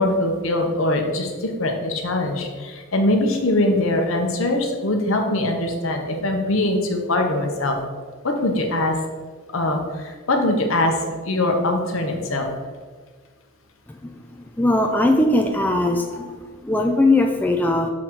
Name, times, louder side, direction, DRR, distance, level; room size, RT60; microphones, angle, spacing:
voice 1, 0.0-7.8 8.2-9.0 9.5-12.5 16.1-16.2, left 1 dB, 65° left, 3 dB, 0.9 m, -22 dB
voice 2, 14.6-16.3 16.6-17.9, left 2 dB, 10° left, 2 dB, 0.3 m, -19 dB
6.2 x 3.9 x 4.5 m, 1.5 s
head